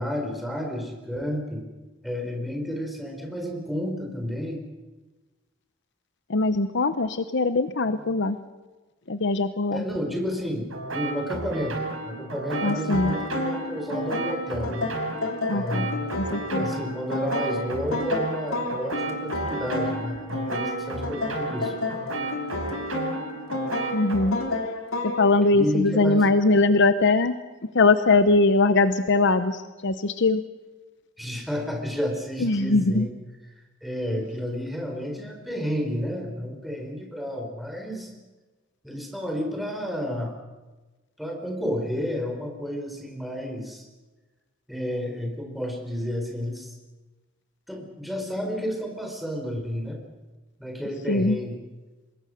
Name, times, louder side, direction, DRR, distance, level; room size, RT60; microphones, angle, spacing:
voice 1, 0.0-1.7 2.0-4.7 9.7-10.6 10.9-11.8 12.0-14.9 15.5-16.3 16.6-21.7 25.5-26.2 31.2-33.1 33.8-38.1 38.8-40.3 41.2-43.8 44.7-46.7 47.7-50.0 50.6-51.6, equal, ahead, 2 dB, 4.4 m, -31 dB
voice 2, 6.3-8.4 9.1-9.8 12.6-13.1 15.5-15.9 16.2-16.7 23.9-24.4 25.0-27.4 27.7-30.4 32.4-33.1 51.1-51.4, left 3 dB, 60° left, 11 dB, 0.9 m, -21 dB
sound 1, 10.7-24.3, right 2 dB, 85° right, 5.8 m, -33 dB
sound 2, 12.5-25.3, left 2 dB, 85° left, 3.2 m, -31 dB
24.5 x 21.0 x 6.5 m, 1.2 s
head